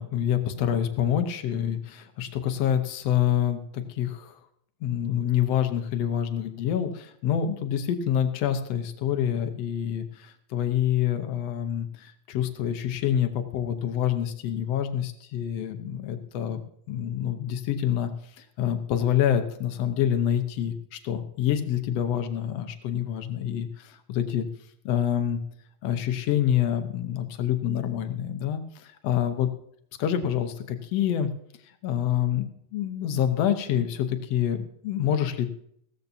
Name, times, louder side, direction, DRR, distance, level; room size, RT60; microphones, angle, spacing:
voice 1, 0.0-4.3 4.8-16.6 16.9-18.1 18.4-24.4 24.8-25.4 25.8-29.5 30.0-31.3 31.8-35.5, left 10 dB, 70° left, 8 dB, 1.6 m, -27 dB
16.5 x 14.0 x 2.7 m, 0.67 s
omnidirectional pair, 3.8 m